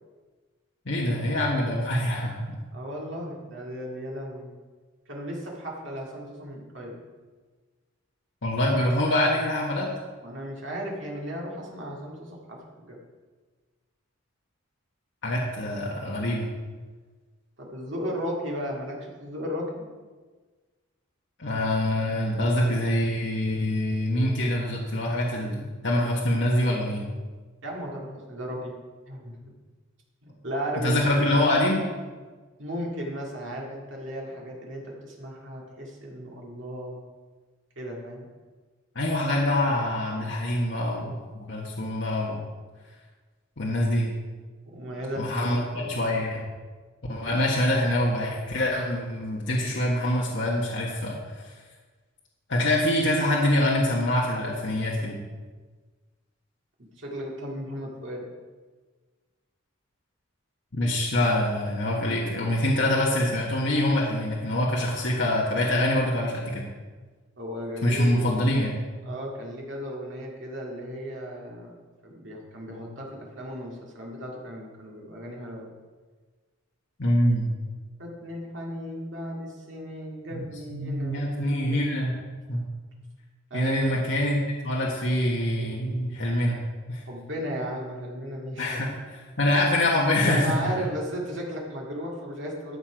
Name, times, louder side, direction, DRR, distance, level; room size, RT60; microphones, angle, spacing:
voice 1, 0.8-2.6 8.4-9.9 15.2-16.5 21.4-27.0 30.8-31.8 38.9-41.1 41.4-42.4 43.6-44.1 45.2-46.4 47.1-51.1 52.5-55.2 60.7-66.6 67.8-68.7 77.0-77.4 80.3-80.4 80.7-82.1 82.5-82.6 83.5-86.6 86.9-87.0 88.6-90.5, left 1 dB, 60° left, -4 dB, 1.5 m, -25 dB
voice 2, 2.7-4.5 5.1-7.0 10.2-13.0 17.6-19.8 27.6-28.7 29.1-29.3 30.2-31.4 32.6-37.0 37.8-38.3 44.6-46.0 57.0-58.3 67.4-68.3 69.0-71.7 72.0-75.7 78.0-81.5 83.5-84.0 87.1-88.8 89.6-89.7 90.2-92.8, equal, 60° right, -2 dB, 2.3 m, -35 dB
13.5 x 6.1 x 5.2 m, 1.4 s
head